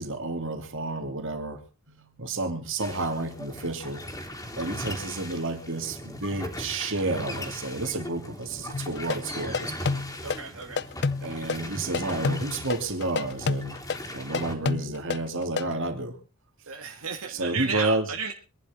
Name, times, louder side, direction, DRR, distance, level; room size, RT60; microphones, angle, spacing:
voice 1, 0.0-1.6 1.9-4.0 4.6-10.0 11.2-13.8 14.1-16.1 17.3-18.1, right 2 dB, 65° right, 6 dB, 3.0 m, -31 dB
sound 1, 2.8-14.6, equal, 15° left, 3.5 m, -38 dB
sound 2, 8.7-15.7, left 4 dB, 55° left, 0.7 m, -28 dB
voice 2, 10.2-10.9 16.7-18.3, right 6 dB, 80° right, 1 dB, 2.0 m, -33 dB
25.5 x 11.0 x 3.7 m, 0.34 s
head